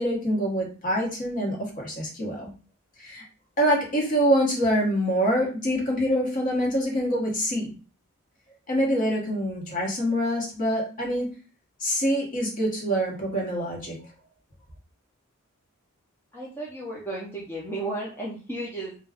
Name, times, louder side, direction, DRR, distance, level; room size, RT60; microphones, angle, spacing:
voice 1, 0.0-2.5 3.0-3.2 3.6-7.7 8.7-11.3 11.8-14.0, equal, 35° left, -2 dB, 0.9 m, -25 dB
voice 2, 16.3-19.0, right 2 dB, 10° left, -5 dB, 0.5 m, -34 dB
2.3 x 2.2 x 3.4 m, 0.36 s
head